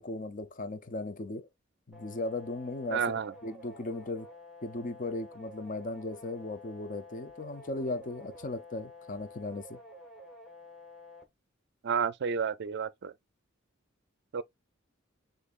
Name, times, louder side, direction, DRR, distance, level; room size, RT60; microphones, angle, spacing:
voice 1, 0.0-1.5 1.9-4.3 4.6-9.8, left 2 dB, 40° left, 0.6 m, -37 dB
sound 1, 1.9-11.2, left 2 dB, ahead, 1.5 m, -50 dB
voice 2, 2.9-3.3 11.8-13.1 14.3-14.4, right 6 dB, 55° right, 0.4 m, -31 dB
6.7 x 2.7 x 2.5 m
head